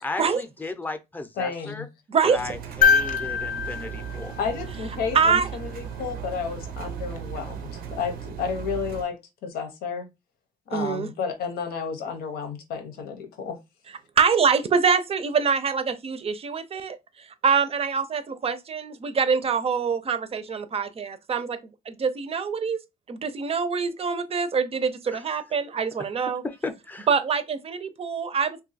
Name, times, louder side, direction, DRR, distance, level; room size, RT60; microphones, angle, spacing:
voice 1, 0.0-1.9 2.2-4.3 25.1-25.2 26.4-27.1, left 3 dB, 10° left, 0.6 m, -35 dB
voice 2, 1.4-1.9 4.4-9.1 9.4-10.1 10.7-13.6, left 6 dB, 90° left, 0.8 m, -31 dB
voice 3, 2.1-2.5 5.1-5.5 10.7-11.1 14.2-21.6 21.9-22.8 23.1-26.4 27.1-28.6, right 6 dB, 40° right, 0.5 m, -25 dB
Engine, 2.3-9.0, right 8 dB, 85° right, 0.6 m, -37 dB
sound 1, 2.8-5.1 7.2-7.3, left 6 dB, 60° left, 0.5 m, -24 dB
2.7 x 2.2 x 4.0 m
cardioid pair, 100°, 15 cm